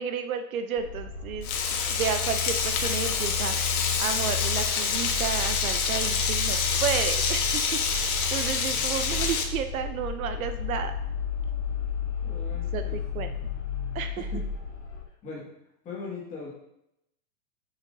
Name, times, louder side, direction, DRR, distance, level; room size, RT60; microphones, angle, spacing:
voice 1, 0.0-1.5 1.9-10.9 12.7-13.3 13.9-14.3, right 7 dB, 60° right, 9 dB, 0.6 m, -32 dB
sound 1, 0.8-15.0, left 5 dB, 85° left, 1.4 m, -33 dB
Frying (food), 1.4-9.4, left 6 dB, 60° left, 1.3 m, -27 dB
voice 2, 12.2-13.4 14.3-14.4 15.2-15.5 15.8-16.5, left 4 dB, 15° left, -5 dB, 1.7 m, -40 dB
8.2 x 6.3 x 2.6 m, 0.80 s
supercardioid pair, 170°, 49 cm